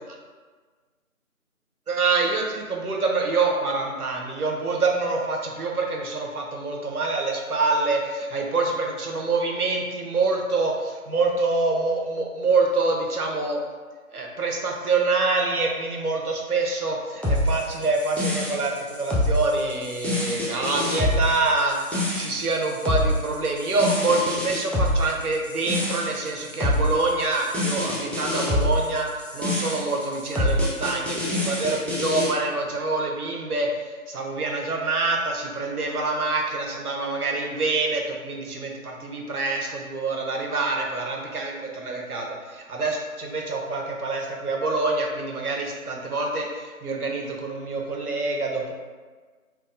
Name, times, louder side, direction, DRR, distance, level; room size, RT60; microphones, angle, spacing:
voice 1, 1.9-13.6 14.1-48.7, right 3 dB, 90° right, 0 dB, 0.7 m, -26 dB
sound 1, 17.2-32.3, left 1 dB, 5° left, 0.3 m, -26 dB
2.8 x 2.1 x 2.4 m, 1.4 s
figure-of-eight pair, 165°, 44 cm